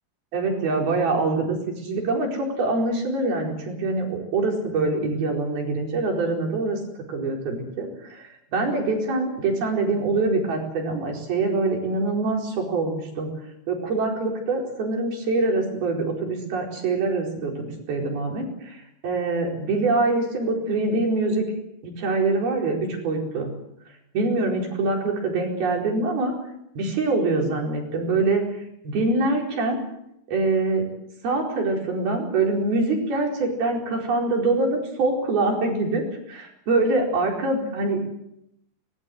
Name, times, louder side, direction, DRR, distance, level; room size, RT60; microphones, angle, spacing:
voice 1, 0.3-1.6 1.8-6.8 7.1-13.3 13.7-21.5 21.8-22.8 23.0-23.5 24.1-26.3 26.8-28.4 28.8-29.8 30.3-30.8 31.2-36.0 36.3-38.0, right 3 dB, 75° right, 1 dB, 6.5 m, -24 dB
24.0 x 21.0 x 7.9 m, 0.78 s
omnidirectional pair, 4.4 m